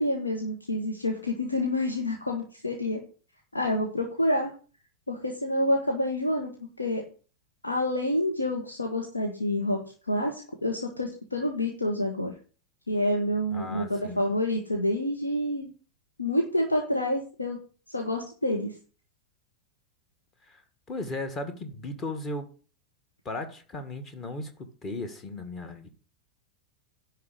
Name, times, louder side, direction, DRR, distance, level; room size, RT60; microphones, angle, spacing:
voice 1, 0.0-3.0 3.5-4.5 5.1-7.0 7.6-12.3 12.9-15.7 16.2-17.6 17.9-18.8, left 1 dB, 80° left, 1 dB, 1.9 m, -28 dB
voice 2, 13.5-14.2 20.5-20.6 20.9-22.5 23.3-25.9, left 2 dB, 25° left, 8 dB, 1.9 m, -36 dB
11.0 x 4.7 x 8.2 m, 0.39 s
figure-of-eight pair, 90°, 0 cm